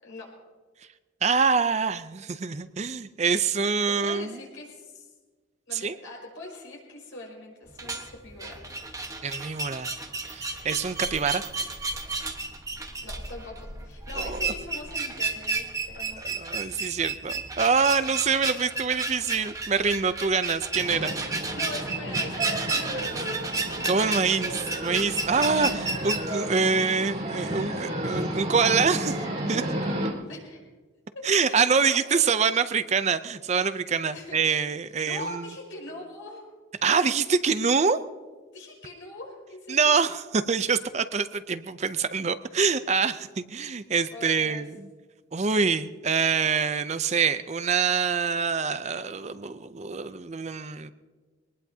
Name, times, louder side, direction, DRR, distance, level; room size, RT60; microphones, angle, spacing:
voice 1, 0.0-0.3 3.9-5.1 5.7-8.6 13.0-16.2 20.9-23.2 24.1-24.4 30.3-30.6 31.1-32.2 34.1-34.4 35.0-36.5 38.5-40.0 44.1-44.6, left 2 dB, 80° left, -2 dB, 5.3 m, -42 dB
voice 2, 1.2-4.4 5.7-6.0 9.2-9.9 10.3-11.4 14.1-14.4 16.2-21.1 23.8-24.5 24.8-29.2 29.5-29.6 31.2-35.4 36.8-38.0 39.7-44.9 45.3-50.9, right 5 dB, 35° right, 12 dB, 0.5 m, -25 dB
sound 1, 7.7-26.2, right 3 dB, 15° right, 1.2 m, -32 dB
sound 2, 20.7-30.1, right 1 dB, 50° right, 3.0 m, -32 dB
22.5 x 19.5 x 2.8 m, 1.4 s
head